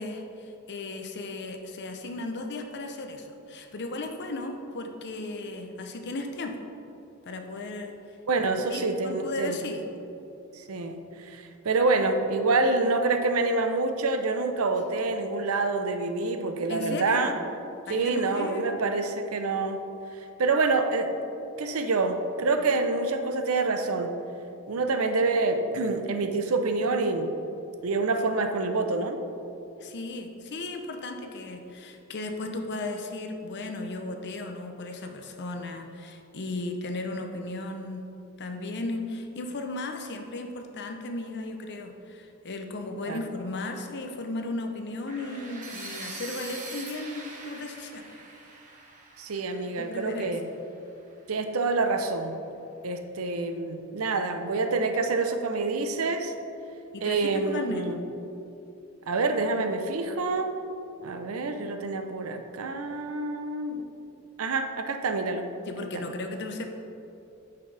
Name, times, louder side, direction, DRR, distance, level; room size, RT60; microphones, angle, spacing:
voice 1, 0.0-6.6 7.2-7.9 8.7-9.8 16.7-17.4 17.9-18.8 29.8-38.0 38.4-48.0 49.8-50.3 56.9-57.8 65.7-66.7, left 2 dB, 55° left, 4 dB, 0.7 m, -35 dB
voice 2, 8.3-9.6 10.5-17.4 17.9-19.8 20.4-21.1 21.6-24.1 24.7-27.3 27.8-29.2 43.1-43.2 49.2-50.4 51.3-52.4 52.8-56.3 57.0-58.0 59.1-60.6 61.0-63.8 64.4-65.5, right 3 dB, 85° right, 7 dB, 0.6 m, -27 dB
sound 1, 45.1-51.0, right 3 dB, 40° right, 1.2 m, -43 dB
9.6 x 5.8 x 3.3 m, 2.8 s
head